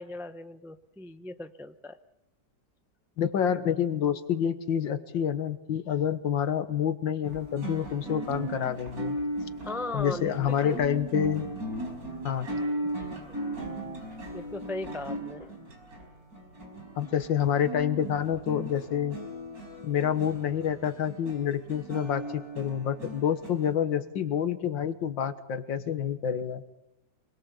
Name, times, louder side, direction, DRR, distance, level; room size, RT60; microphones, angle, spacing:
voice 1, 0.0-2.0 9.6-10.8 13.3-13.5 14.3-15.5, left 2 dB, 5° right, 9 dB, 0.4 m, -38 dB
voice 2, 3.2-9.2 9.9-11.5 12.2-12.5 17.0-19.2 19.8-22.2 22.6-26.6, left 8 dB, 80° left, 10 dB, 2.0 m, -28 dB
sound 1, 7.2-23.7, right 1 dB, 50° right, 5.6 m, -37 dB
27.0 x 21.5 x 7.1 m, 0.88 s
omnidirectional pair, 2.0 m